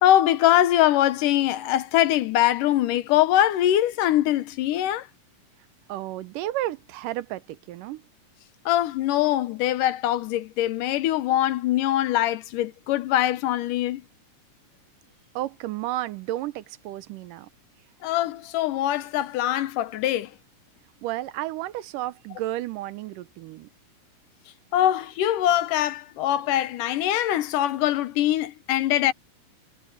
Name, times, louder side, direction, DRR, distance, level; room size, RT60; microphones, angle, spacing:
voice 1, 0.0-5.1 8.7-14.0 18.0-20.3 24.7-29.1, left 13 dB, 80° left, 2.6 m, -22 dB
voice 2, 5.9-8.0 15.4-17.5 21.0-23.7, right 15 dB, 85° right, 2.4 m, -32 dB
omnidirectional pair, 3.7 m